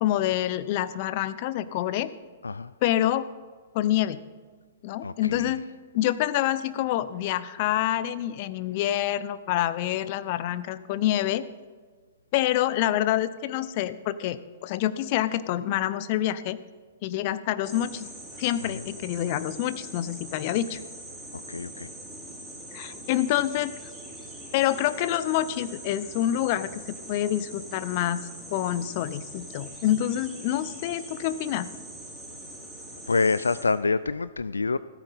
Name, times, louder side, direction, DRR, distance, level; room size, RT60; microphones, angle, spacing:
voice 1, 0.0-2.1 2.8-3.2 3.7-4.2 4.8-5.6 5.9-11.4 12.3-16.6 17.0-18.1 18.4-20.8 22.7-23.7 24.5-31.7, left 13 dB, 45° left, 15 dB, 0.7 m, -27 dB
voice 2, 5.0-5.6 18.6-18.8 21.5-21.9 33.1-34.8, left 4 dB, 85° left, 16 dB, 0.3 m, -27 dB
sound 1, 17.6-33.6, right 1 dB, ahead, 3.8 m, -42 dB
16.0 x 13.5 x 4.1 m, 1.5 s
hypercardioid pair, 115°, 0 cm